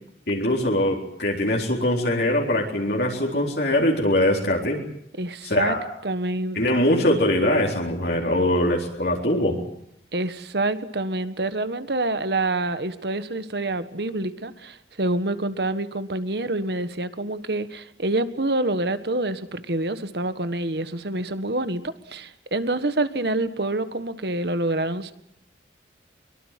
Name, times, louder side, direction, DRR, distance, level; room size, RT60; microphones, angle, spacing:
voice 1, 0.3-4.8 5.4-5.9 6.6-9.6, left 1 dB, 65° left, -1 dB, 4.0 m, -22 dB
voice 2, 5.2-5.7 6.0-6.8 10.1-25.1, right 2 dB, 65° right, 11 dB, 1.6 m, -27 dB
23.5 x 22.5 x 7.6 m, 0.75 s
head